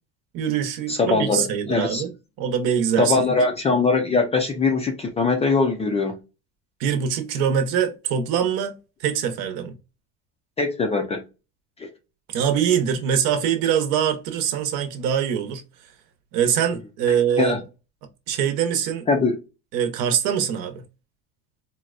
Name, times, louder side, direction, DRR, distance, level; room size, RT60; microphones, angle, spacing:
voice 1, 0.3-3.2 6.8-9.7 12.3-15.6 16.3-17.6 18.3-19.1 19.7-20.8, right 8 dB, 65° right, 0.9 m, -23 dB
voice 2, 0.9-2.0 3.0-6.2 10.6-11.2 11.8-11.9 17.4-17.6 19.1-19.4, left 4 dB, 15° left, 0.4 m, -21 dB
4.1 x 2.1 x 2.4 m
cardioid pair, 145°, 38 cm